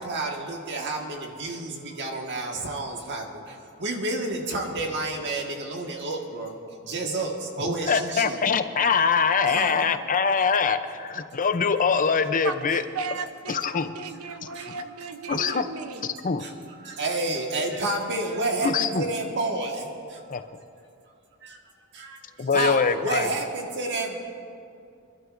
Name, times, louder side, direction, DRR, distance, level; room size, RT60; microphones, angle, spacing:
voice 1, 0.0-6.6 6.8-8.4 9.5-9.9 14.6-14.7 16.4-16.5 16.8-20.2 21.4-21.6 21.9-22.2 22.5-24.2, right 2 dB, 55° right, 1 dB, 1.6 m, -30 dB
voice 2, 7.7-12.8 13.5-13.9 15.3-15.7 16.2-16.4 18.6-19.1 20.3-20.4 22.4-23.3, left 5 dB, 35° left, 10 dB, 0.6 m, -23 dB
voice 3, 12.4-16.2, right 4 dB, 85° right, 9 dB, 0.8 m, -36 dB
26.0 x 12.0 x 2.6 m, 2.5 s
head